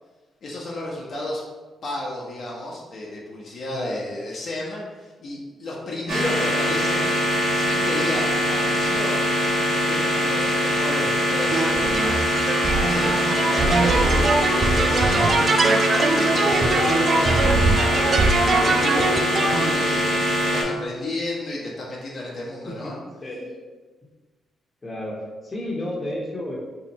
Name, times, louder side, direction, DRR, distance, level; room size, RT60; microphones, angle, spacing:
voice 1, 0.4-1.4 1.8-7.1 7.5-9.2 9.9-12.2 12.8-14.2 14.5-15.7 16.2-18.0 18.5-23.0, left 1 dB, 60° left, -4 dB, 0.8 m, -32 dB
voice 2, 3.7-4.2 22.7-23.6 24.8-26.6, left 1 dB, 30° left, -3 dB, 1.0 m, -32 dB
sound 1, 6.1-20.6, equal, 70° right, 1.3 m, -22 dB
sound 2, 11.5-19.7, right 3 dB, 50° right, 0.3 m, -22 dB
2.7 x 2.5 x 4.1 m, 1.3 s
cardioid pair, 70°, 0 cm